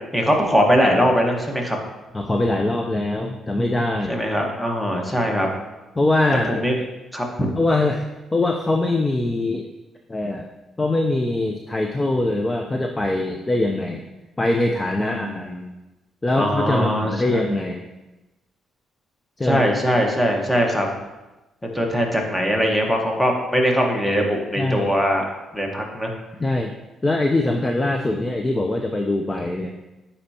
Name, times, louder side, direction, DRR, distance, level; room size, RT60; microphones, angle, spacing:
voice 1, 0.1-1.8 4.1-5.5 6.5-6.7 7.1-7.5 15.1-15.6 16.3-17.4 19.4-20.9 21.6-25.3 25.5-26.1, equal, 5° left, 1 dB, 1.2 m, -21 dB
voice 2, 2.1-4.2 6.0-6.5 7.6-8.0 8.3-9.7 10.1-10.5 10.8-14.0 14.4-15.5 16.2-17.8 19.4-19.6 24.6-24.9 26.4-26.7 27.0-29.7, left 2 dB, 20° left, 3 dB, 0.5 m, -22 dB
9.4 x 4.4 x 2.8 m, 1.1 s
cardioid pair, 90°, 0 cm